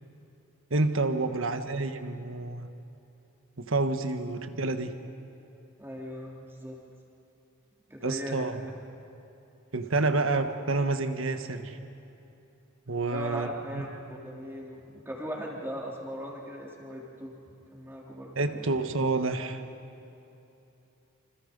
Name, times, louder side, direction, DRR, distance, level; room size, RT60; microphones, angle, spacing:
voice 1, 0.7-2.7 3.6-4.9 8.0-8.6 9.7-11.8 12.9-13.5 18.4-19.6, right 3 dB, 65° right, 8 dB, 1.4 m, -28 dB
voice 2, 5.8-6.8 7.9-8.7 13.1-13.9 14.2-17.3 17.7-18.8, equal, 10° right, -2 dB, 3.4 m, -39 dB
28.0 x 27.0 x 5.3 m, 2.9 s
head